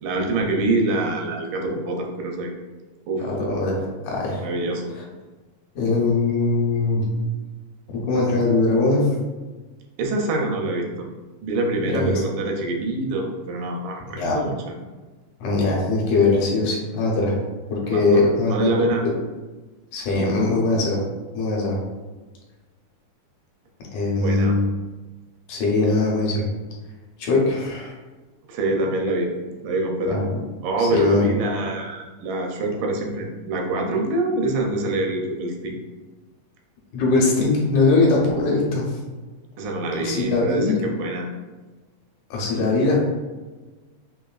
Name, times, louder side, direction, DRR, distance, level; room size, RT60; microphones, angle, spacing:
voice 1, 0.0-2.5 3.1-3.2 4.4-4.9 10.0-11.1 11.4-14.5 17.8-18.2 18.5-19.0 24.2-24.6 28.5-29.3 29.6-30.2 30.6-35.7 39.6-41.3, right 2 dB, 85° right, 1 dB, 2.2 m, -25 dB
voice 2, 3.2-4.4 5.8-7.0 8.1-9.1 11.9-12.2 14.1-14.4 15.4-17.4 17.7-18.7 19.9-21.0 21.3-21.8 23.9-24.7 25.5-26.4 27.2-27.9 30.1-30.4 30.8-31.5 36.9-39.0 40.0-40.8 42.3-43.0, left 3 dB, 75° left, -3 dB, 2.2 m, -21 dB
5.3 x 2.5 x 2.3 m, 1.3 s
omnidirectional pair, 3.7 m